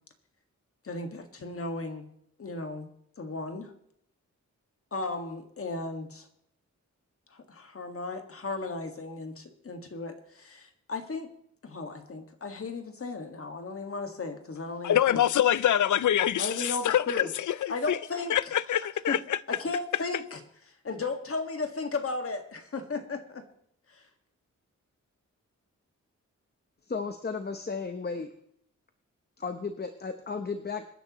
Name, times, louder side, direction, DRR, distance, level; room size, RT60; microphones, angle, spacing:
voice 1, 0.8-2.0 2.4-2.9 3.2-3.7 4.9-6.3 7.3-11.3 11.6-15.2 16.4-17.3 17.7-18.4 19.1-19.2 19.5-20.4 20.8-23.4 23.9-24.0, left 3 dB, 50° left, 1.8 m, -35 dB
voice 2, 14.8-18.0 18.3-19.4, left 11 dB, 85° left, 0.5 m, -25 dB
voice 3, 26.9-28.3 29.4-30.9, left 4 dB, 35° left, 0.9 m, -34 dB
26.0 x 10.5 x 3.0 m
wide cardioid pair, 170°, 29 cm